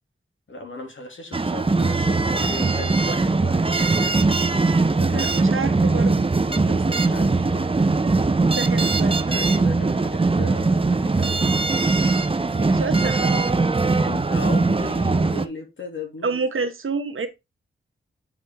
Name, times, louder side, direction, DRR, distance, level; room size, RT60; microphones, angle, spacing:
voice 1, 0.5-4.2 4.9-5.3 5.9-7.6 9.3-11.4 14.0-16.4, left 2 dB, 65° left, 2.5 m, -36 dB
football party people in the streets, 1.3-15.5, right 3 dB, 25° right, 0.7 m, -21 dB
voice 2, 5.0-6.3 8.5-9.2 12.5-13.5 16.2-17.3, right 4 dB, 75° right, 1.3 m, -28 dB
8.2 x 4.9 x 3.6 m
cardioid pair, 50°, 21 cm